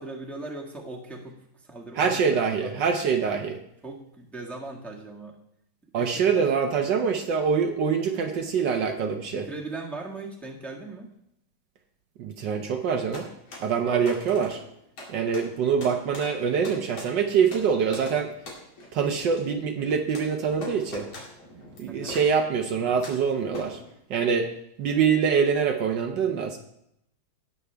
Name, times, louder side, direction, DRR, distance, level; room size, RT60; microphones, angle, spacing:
voice 1, 0.0-2.7 3.8-5.4 6.0-6.3 9.3-11.1 13.9-14.1 21.9-22.2, right 2 dB, ahead, -2 dB, 1.4 m, -39 dB
voice 2, 2.0-3.6 5.9-9.5 12.2-13.3 13.6-14.6 15.1-18.3 18.9-21.1 21.8-23.8 24.1-24.5 24.8-26.6, right 6 dB, 65° right, 5 dB, 1.4 m, -24 dB
sound 1, 12.8-23.9, left 2 dB, 80° left, 3.4 m, -43 dB
18.5 x 6.8 x 3.4 m, 0.77 s
omnidirectional pair, 2.2 m